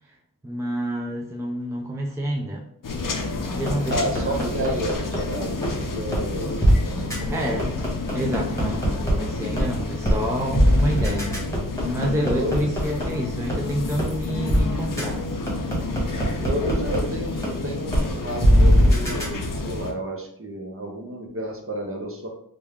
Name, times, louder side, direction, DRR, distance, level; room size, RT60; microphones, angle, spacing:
voice 1, 0.4-2.7 3.5-4.5 7.3-7.7 8.1-11.4 11.8-15.3 15.6-15.7 16.1-16.3, equal, 10° right, 0 dB, 0.4 m, -28 dB
sound 1, 2.8-19.9, left 2 dB, 60° left, 0.6 m, -30 dB
sound 2, 3.7-5.2 5.6-5.7 6.1-6.2 6.6-6.7 7.1-7.2 7.6-9.1 9.6-9.7 10.0-10.2 10.5-13.0 13.5-13.6 14.0-14.1 14.5-14.6 15.0-15.1 15.5-17.0 17.4-17.5 17.9-18.0 18.4-19.2, equal, 10° left, 1.3 m, -19 dB
voice 2, 3.9-7.6 12.1-12.7 16.0-22.3, right 1 dB, 35° right, 0 dB, 0.8 m, -31 dB
3.3 x 2.2 x 3.5 m, 0.67 s
wide cardioid pair, 55°, 36 cm